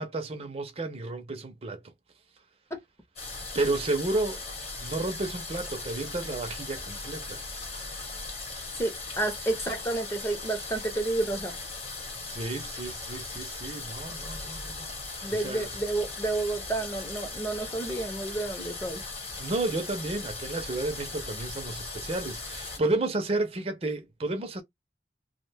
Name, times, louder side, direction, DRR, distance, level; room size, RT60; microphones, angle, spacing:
voice 1, 0.0-1.8 3.5-4.4 4.8-7.4 12.3-15.7 19.4-24.6, right 2 dB, 35° right, 0.5 m, -32 dB
sound 1, 3.2-22.8, left 3 dB, 35° left, 1.0 m, -38 dB
voice 2, 8.8-11.5 15.2-19.0, right 2 dB, 15° left, 0.6 m, -30 dB
2.5 x 2.1 x 3.2 m
head